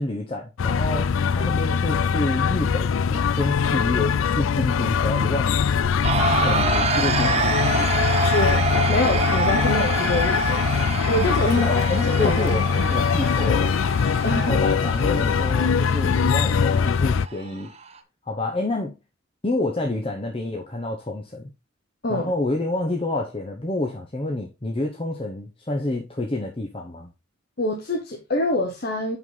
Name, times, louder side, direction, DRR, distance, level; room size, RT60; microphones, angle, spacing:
voice 1, 0.0-5.6 6.1-7.9 11.2-13.7 14.3-17.7 18.3-19.0 19.4-21.5 22.1-27.1, left 2 dB, 30° left, 0.9 m, -28 dB
sound 1, 0.6-17.3, left 6 dB, 85° left, 0.4 m, -22 dB
sound 2, 6.0-18.0, right 4 dB, 30° right, 0.9 m, -27 dB
voice 2, 8.3-10.6 11.1-11.6 11.9-13.3 14.2-14.6 22.0-22.3 27.6-29.2, left 1 dB, 50° left, 1.3 m, -26 dB
7.2 x 5.7 x 4.0 m
head